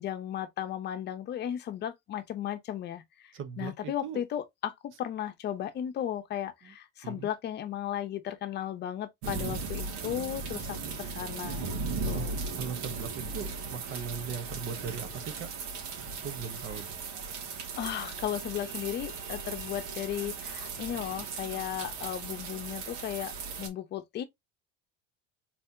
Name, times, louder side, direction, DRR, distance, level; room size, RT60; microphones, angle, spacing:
voice 1, 0.0-11.7 12.1-12.3 17.8-24.2, left 11 dB, 35° left, 0.8 m, -35 dB
voice 2, 3.3-4.2 6.6-6.7 7.0-7.3 12.1-12.3 12.5-15.5 16.2-17.0, right 6 dB, 40° right, 0.9 m, -39 dB
sound 1, 9.2-23.7, right 4 dB, 80° right, 2.3 m, -37 dB
4.2 x 4.1 x 2.6 m
cardioid pair, 170°, 32 cm